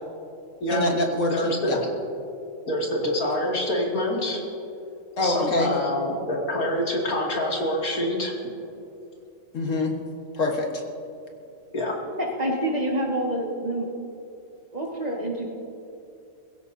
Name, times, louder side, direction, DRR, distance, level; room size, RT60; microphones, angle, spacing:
voice 1, 0.7-1.8 5.2-5.7 9.5-9.9 10.3-10.8, left 2 dB, 60° left, 1 dB, 1.8 m, -25 dB
voice 2, 1.3-1.8 2.7-4.4 5.2-8.3 11.7-12.0, left 1 dB, 90° left, -3 dB, 3.0 m, -26 dB
voice 3, 12.2-13.9 14.7-15.5, right 1 dB, 30° right, -2 dB, 2.0 m, -27 dB
21.5 x 16.0 x 2.8 m, 2.7 s
omnidirectional pair, 1.5 m